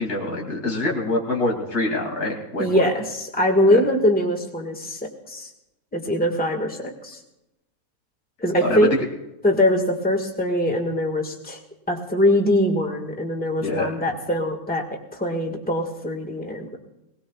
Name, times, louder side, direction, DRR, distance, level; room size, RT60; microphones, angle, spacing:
voice 1, 0.0-2.9 8.6-9.0 13.6-14.0, left 2 dB, 85° left, -1 dB, 3.3 m, -25 dB
voice 2, 2.6-5.5 5.9-7.2 8.4-8.9 9.4-11.6 11.9-16.8, left 1 dB, 5° left, 2 dB, 1.7 m, -22 dB
22.5 x 19.0 x 2.4 m, 0.92 s
omnidirectional pair, 1.6 m